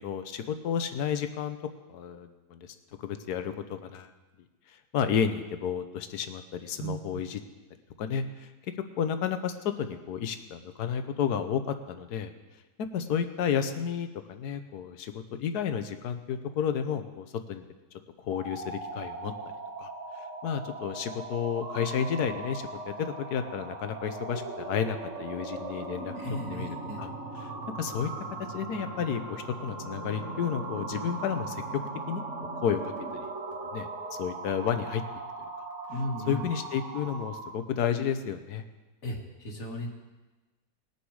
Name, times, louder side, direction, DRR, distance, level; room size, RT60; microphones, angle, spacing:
voice 1, 0.0-1.6 1.9-4.1 4.9-7.4 8.0-8.5 9.0-12.3 12.8-17.6 18.2-19.3 19.8-19.9 20.4-26.1 26.5-27.1 27.4-27.5 27.7-28.1 28.5-31.6 32.1-32.2 32.6-33.3 33.7-33.9 34.2-35.0 36.3-38.6, left 8 dB, 70° left, 9 dB, 1.4 m, -31 dB
sound 1, 18.2-37.6, right 3 dB, 45° right, 2.0 m, -39 dB
voice 2, 26.2-27.0 35.9-36.4 39.0-39.9, equal, 55° left, 1 dB, 2.0 m, -35 dB
20.0 x 7.1 x 4.8 m, 1.2 s
omnidirectional pair, 1.8 m